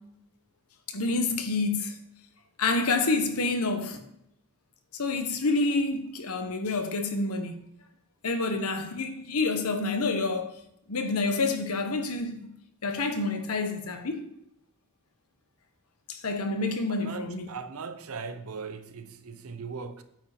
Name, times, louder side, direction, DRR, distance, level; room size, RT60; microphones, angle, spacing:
voice 1, 0.9-2.0 2.6-4.0 4.9-7.6 8.2-10.6 10.9-12.5 12.8-14.3 16.1-17.5, left 3 dB, 85° left, 1.1 m, -28 dB
voice 2, 16.9-20.0, right 5 dB, 75° right, 0.7 m, -39 dB
8.8 x 4.9 x 5.1 m
head